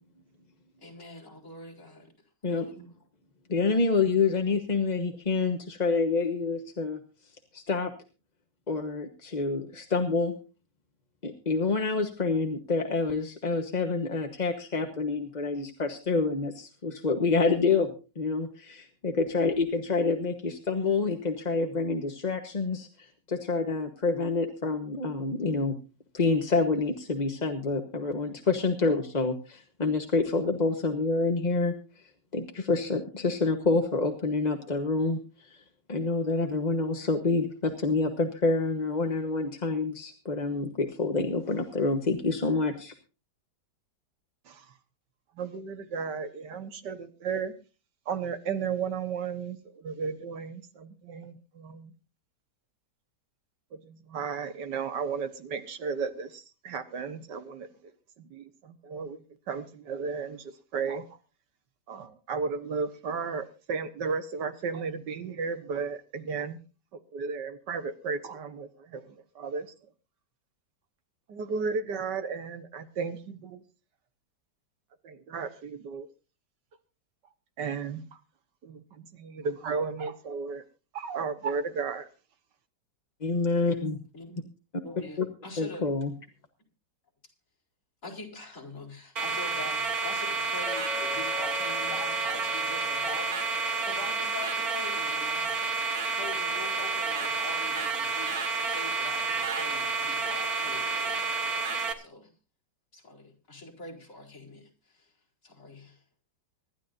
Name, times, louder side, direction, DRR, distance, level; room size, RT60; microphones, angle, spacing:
voice 1, 0.8-2.1 2.5-2.9 84.1-84.4 84.8-85.9 88.0-93.3 93.8-95.6 96.1-101.2 102.0-102.3 102.9-105.1 105.4-106.0, left 3 dB, 50° left, 4.9 m, -44 dB
voice 2, 3.5-7.0 7.5-7.9 8.7-10.3 11.2-17.9 18.2-25.7 26.1-32.0 32.3-35.6 35.9-42.9 83.2-84.0 85.2-85.3 85.6-86.1, left 3 dB, 30° left, 1.1 m, -27 dB
voice 3, 45.4-47.5 48.1-51.9 53.7-57.9 58.2-61.2 61.9-66.6 67.1-69.7 71.3-73.6 75.0-76.1 77.6-78.0 78.6-80.6 80.9-82.1, right 5 dB, 80° right, 1.9 m, -34 dB
sound 1, 89.2-101.9, right 4 dB, 60° right, 2.0 m, -30 dB
Chink clink, 90.7-95.1, left 6 dB, 90° left, 2.4 m, -43 dB
25.0 x 12.0 x 2.6 m
omnidirectional pair, 1.8 m